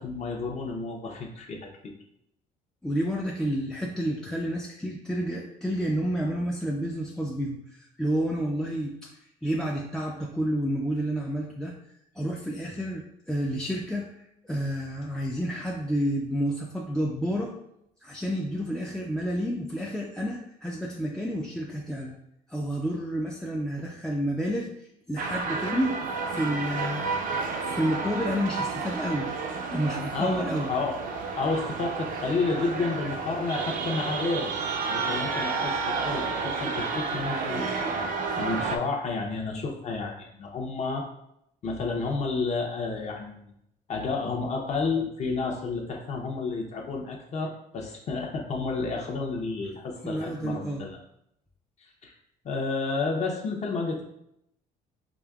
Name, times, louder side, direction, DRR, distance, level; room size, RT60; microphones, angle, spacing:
voice 1, 0.0-1.9 30.1-34.5 34.9-37.6 38.4-41.1 41.6-43.5 43.9-51.0 52.0-52.1 52.4-54.0, left 4 dB, 40° left, 1 dB, 0.8 m, -31 dB
voice 2, 2.8-9.1 9.4-11.8 12.2-14.1 14.4-17.5 18.0-22.2 22.5-24.7 25.1-26.0 26.3-27.1 27.6-29.3 29.7-30.7 50.0-50.8, equal, 5° left, -2 dB, 0.4 m, -30 dB
sound 1, 25.2-38.8, right 4 dB, 50° right, 0.5 m, -31 dB
5.0 x 2.6 x 2.3 m, 0.77 s
cardioid pair, 110°, 17 cm